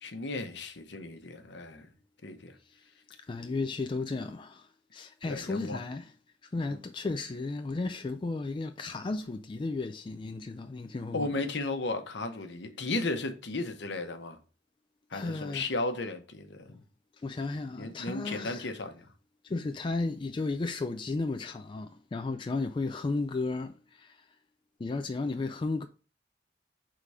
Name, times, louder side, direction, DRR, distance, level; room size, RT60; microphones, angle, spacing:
voice 1, 0.0-1.9 2.2-2.6 5.3-5.8 6.7-6.8 11.1-14.4 15.1-16.8 17.7-19.1, left 2 dB, 65° left, 0.9 m, -35 dB
voice 2, 2.6-6.1 6.4-11.4 15.1-15.7 16.7-16.8 17.2-18.7 19.4-24.3 24.8-25.9, left 3 dB, 25° left, 0.3 m, -34 dB
4.7 x 3.8 x 5.5 m
head